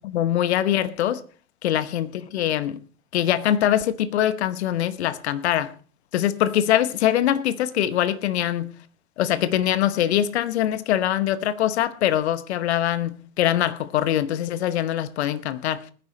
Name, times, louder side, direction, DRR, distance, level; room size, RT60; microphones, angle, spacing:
voice 1, 0.0-1.2 1.6-2.8 3.1-5.7 6.1-8.7 9.2-15.9, left 11 dB, 50° left, 1.0 m, -23 dB
20.0 x 10.0 x 3.2 m
figure-of-eight pair, 115°, 43 cm